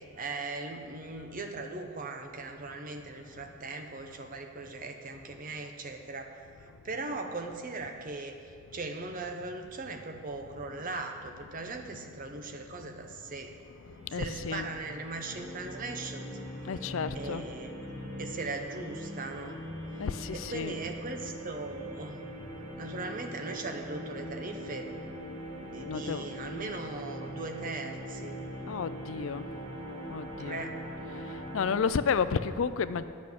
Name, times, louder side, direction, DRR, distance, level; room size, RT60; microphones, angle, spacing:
voice 1, 0.2-8.4 8.7-13.6 14.1-16.4 17.1-17.8 18.2-19.6 20.3-22.2 22.8-24.9 25.6-28.4 30.4-30.7, right 3 dB, 40° right, 5 dB, 0.8 m, -39 dB
voice 2, 3.2-3.5 5.3-5.4 6.6-7.0 8.6-8.9 10.6-10.7 11.2-13.3 13.6-15.9 16.3-18.5 19.2-20.8 21.1-22.9 23.9-24.0 24.7-26.5 28.2-28.3 28.6-30.6 31.0-33.0, left 6 dB, 60° left, 13 dB, 0.4 m, -36 dB
sound 1, 13.8-31.7, equal, 75° right, 2.5 m, -42 dB
9.6 x 6.4 x 8.4 m, 2.4 s
head